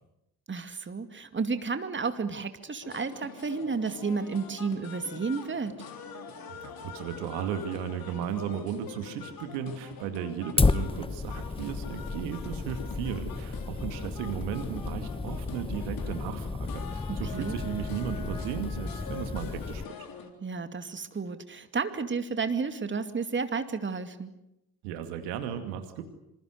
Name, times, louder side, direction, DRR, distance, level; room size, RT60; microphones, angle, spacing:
voice 1, 0.5-5.7 17.1-17.6 20.4-24.3, right 5 dB, 25° right, 9 dB, 2.4 m, -32 dB
sound 1, 2.8-20.3, left 6 dB, 55° left, 3.8 m, -44 dB
voice 2, 6.5-19.8 24.8-26.0, right 8 dB, 70° right, 8 dB, 2.4 m, -35 dB
Fire, 10.6-19.8, left 3 dB, 15° left, 0.9 m, -32 dB
27.5 x 26.5 x 6.6 m, 0.85 s
figure-of-eight pair, 45°, 43 cm